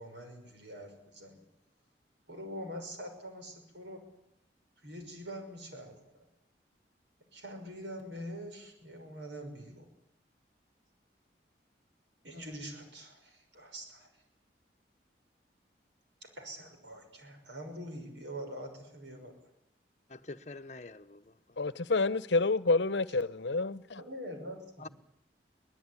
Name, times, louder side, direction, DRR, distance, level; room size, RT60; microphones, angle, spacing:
voice 1, 0.0-1.4 2.3-4.0 4.8-5.9 7.3-9.9 12.2-14.1 16.2-19.3 24.0-24.9, equal, 85° right, 6.2 m, -44 dB
voice 2, 20.1-21.3 24.8-24.9, left 3 dB, 40° left, 1.0 m, -45 dB
voice 3, 21.6-24.0, left 3 dB, 80° left, 0.9 m, -28 dB
23.5 x 19.5 x 9.9 m
head